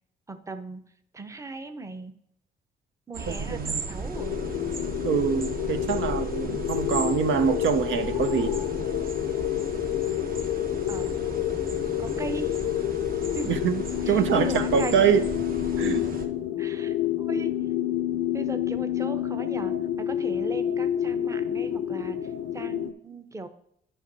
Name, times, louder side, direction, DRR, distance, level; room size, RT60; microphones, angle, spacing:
voice 1, 0.3-0.8 1.1-2.1 3.1-4.4 10.9-11.1 12.0-12.5 13.4-13.5 14.0-15.1 16.6-17.5 18.3-22.2 22.5-23.5, right 2 dB, 15° right, 0.7 m, -37 dB
sound 1, 3.1-16.2, right 3 dB, 45° right, 1.1 m, -36 dB
voice 2, 3.3-3.9 5.0-8.6 13.4-15.3 15.8-16.1, right 7 dB, 70° right, 0.6 m, -25 dB
sound 2, 4.1-22.9, left 12 dB, 70° left, 0.5 m, -29 dB
sound 3, 7.7-12.9 13.6-17.3 18.3-22.9, right 2 dB, 90° right, 1.9 m, -49 dB
8.1 x 5.3 x 4.0 m
cardioid pair, 90°, 20 cm